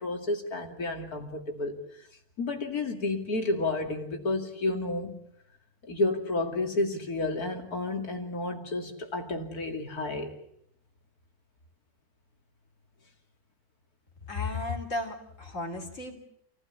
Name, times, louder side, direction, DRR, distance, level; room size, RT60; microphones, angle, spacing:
voice 1, 0.0-1.8 2.4-5.2 5.9-10.4, left 2 dB, 80° left, 3 dB, 3.1 m, -31 dB
voice 2, 14.3-16.2, left 3 dB, 55° left, 3 dB, 3.7 m, -34 dB
28.5 x 16.0 x 8.3 m, 0.75 s
omnidirectional pair, 1.6 m